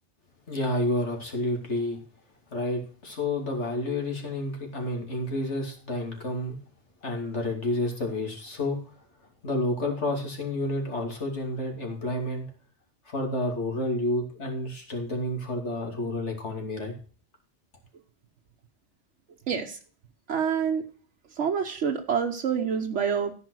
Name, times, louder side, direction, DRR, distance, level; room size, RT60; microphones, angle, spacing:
voice 1, 0.5-2.0 2.5-6.6 7.0-8.8 9.4-12.5 13.1-16.9, left 1 dB, 75° left, 2 dB, 3.0 m, -30 dB
voice 2, 19.5-19.8 20.3-20.8 21.3-23.3, right 7 dB, 80° right, 1 dB, 1.2 m, -27 dB
14.0 x 5.6 x 6.3 m, 0.42 s
omnidirectional pair, 1.2 m